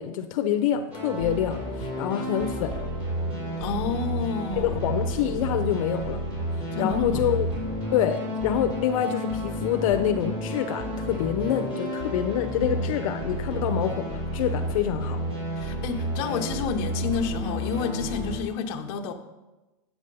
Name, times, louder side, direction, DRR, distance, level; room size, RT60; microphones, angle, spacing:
voice 1, 0.0-2.8 4.6-6.2 6.8-7.5 7.9-15.2, left 9 dB, 75° left, 7 dB, 0.7 m, -26 dB
sound 1, 0.9-18.4, equal, 35° right, 3.8 m, -31 dB
voice 2, 3.6-5.0 6.7-7.2 15.5-19.1, left 5 dB, 50° left, 4 dB, 0.9 m, -30 dB
8.7 x 7.2 x 5.4 m, 1.1 s
supercardioid pair, 170°, 17 cm